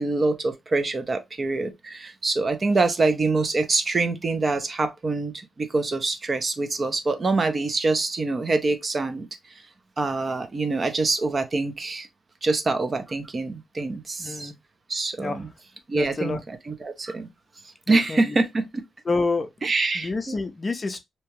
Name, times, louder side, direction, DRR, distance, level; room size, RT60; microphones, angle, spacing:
voice 1, 0.0-9.3 10.0-12.1 12.4-14.5 14.9-15.5 15.9-16.4 16.7-17.3 17.9-18.6 19.6-20.4, right 3 dB, 35° right, 0.5 m, -25 dB
voice 2, 14.2-14.5 15.2-15.5 15.9-16.4 17.9-18.4 19.1-19.5 19.9-21.0, left 3 dB, 30° left, 0.4 m, -28 dB
2.8 x 2.3 x 2.9 m
cardioid pair, 110°, 0 cm